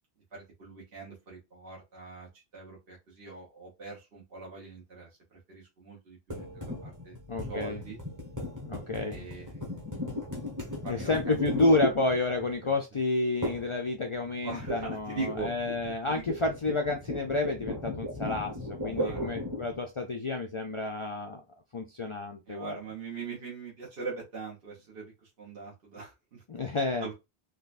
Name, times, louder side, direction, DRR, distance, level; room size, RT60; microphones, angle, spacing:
voice 1, 0.3-7.1 7.5-8.0 9.1-9.6 10.8-11.7 12.6-12.7 14.4-15.5 16.0-16.2 18.8-19.3 22.5-26.4 27.0-27.1, right 4 dB, 70° right, -4 dB, 1.2 m, -42 dB
sound 1, 6.3-12.6 13.4-13.8 14.1-19.8, left 1 dB, 20° right, 1.0 m, -36 dB
voice 2, 7.3-7.8 8.7-9.2 10.9-21.4 21.7-22.8 26.5-27.1, left 2 dB, 50° left, 3 dB, 0.4 m, -30 dB
3.7 x 2.3 x 2.4 m, 0.24 s
omnidirectional pair, 1.0 m